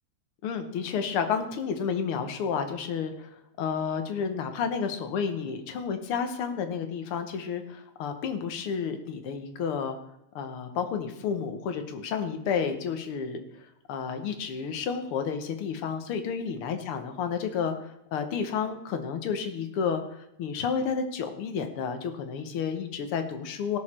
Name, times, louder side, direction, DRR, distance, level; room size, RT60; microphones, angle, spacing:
voice 1, 0.4-10.0 10.3-13.4 13.9-23.8, left 6 dB, 65° left, 7 dB, 1.5 m, -31 dB
18.5 x 6.5 x 4.3 m, 0.84 s
omnidirectional pair, 3.6 m